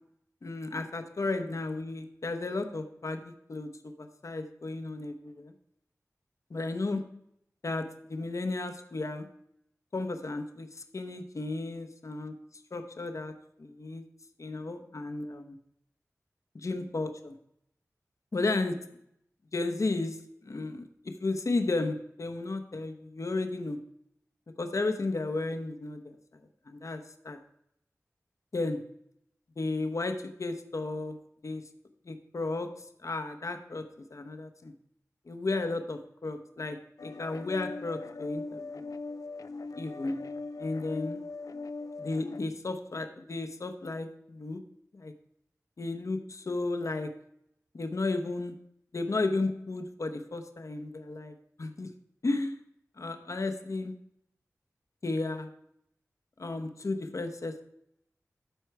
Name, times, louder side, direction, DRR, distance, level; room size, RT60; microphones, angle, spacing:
voice 1, 0.4-5.5 6.5-7.1 7.6-9.3 9.9-12.3 12.7-13.3 13.6-14.0 14.4-15.6 16.5-17.4 18.3-18.9 19.5-20.9 21.2-23.9 24.6-26.1 26.7-27.0 27.2-27.4 28.5-28.9 29.6-31.2 31.4-31.6 32.1-33.8 34.1-34.7 35.3-38.8 39.8-40.2 40.6-41.2 42.0-44.6 44.9-45.1 45.8-47.1 47.7-48.7 48.9-51.3 51.6-51.9 52.2-52.6 53.0-53.9 55.0-55.5 56.4-57.6, left 2 dB, 65° left, 7 dB, 0.9 m, -33 dB
sound 1, 37.0-42.4, left 3 dB, 85° left, 0.4 m, -40 dB
12.5 x 4.5 x 4.6 m, 0.75 s
wide cardioid pair, 70°, 6 cm